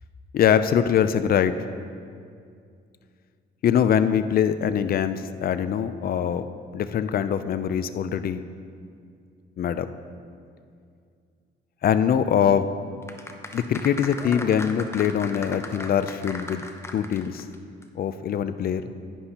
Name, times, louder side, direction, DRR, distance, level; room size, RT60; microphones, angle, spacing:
voice 1, 0.3-1.5 3.6-6.5 6.7-8.4 9.6-9.9 11.8-12.7 13.5-16.6 16.9-17.4 18.0-18.9, left 8 dB, 50° left, 12 dB, 0.5 m, -23 dB
sound 1, 13.0-17.6 17.8-17.9, left 2 dB, 15° left, 0.7 m, -37 dB
11.0 x 9.9 x 2.9 m, 2.3 s
cardioid pair, 90°, 20 cm